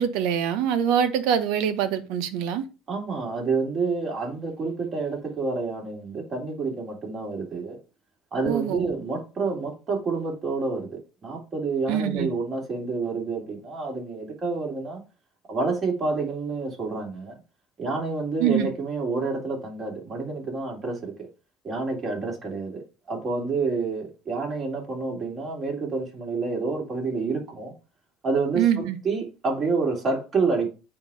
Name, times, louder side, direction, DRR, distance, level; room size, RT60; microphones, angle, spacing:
voice 1, 0.0-2.6 8.4-8.9 11.9-12.3 18.4-18.7 28.5-29.0, right 9 dB, 75° right, 1.0 m, -24 dB
voice 2, 2.9-7.8 8.3-15.0 15.5-17.4 17.8-21.3 21.6-27.7 28.2-30.7, right 4 dB, 35° right, 3.3 m, -28 dB
8.7 x 3.0 x 5.2 m
supercardioid pair, 95°, 0 cm